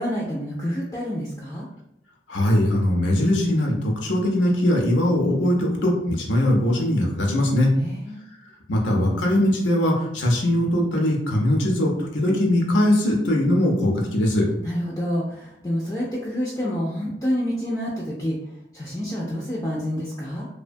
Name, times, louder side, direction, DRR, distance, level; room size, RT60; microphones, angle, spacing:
voice 1, 0.0-1.7 7.8-8.2 14.6-18.4 18.7-20.5, equal, 15° left, -5 dB, 0.4 m, -28 dB
voice 2, 2.3-7.7 8.7-14.5, left 1 dB, 85° left, 0 dB, 0.6 m, -21 dB
2.7 x 2.1 x 2.5 m, 0.77 s
head